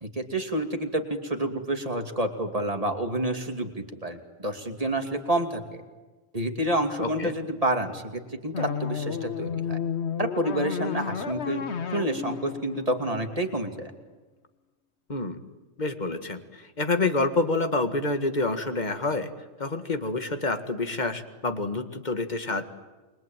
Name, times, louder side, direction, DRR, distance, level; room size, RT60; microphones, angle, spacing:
voice 1, 0.0-5.8 6.3-9.8 10.2-11.6 11.9-13.9, right 1 dB, 30° right, 4 dB, 2.9 m, -29 dB
voice 2, 7.0-7.3 15.1-15.4 15.8-19.3 19.6-22.6, left 3 dB, 35° left, 8 dB, 2.0 m, -28 dB
sound 1, 8.5-13.7, left 7 dB, 65° left, 1.4 m, -32 dB
29.0 x 22.5 x 9.2 m, 1.2 s
omnidirectional pair, 1.3 m